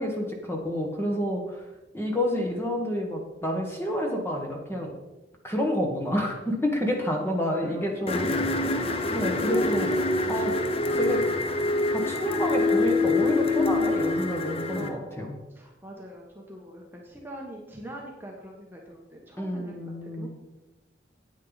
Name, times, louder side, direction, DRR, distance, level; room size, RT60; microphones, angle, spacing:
voice 1, 0.0-1.7 1.9-5.0 5.4-8.2 9.1-10.0 10.3-10.5 10.9-11.2 11.9-15.3 19.4-20.3, equal, 15° left, 1 dB, 1.5 m, -29 dB
voice 2, 6.8-7.9 8.2-8.5 9.4-9.7 14.7-20.3, equal, 10° right, -1 dB, 1.2 m, -42 dB
sound 1, 8.1-14.9, left 2 dB, 30° left, 0.7 m, -25 dB
9.3 x 8.9 x 4.0 m, 1.0 s
head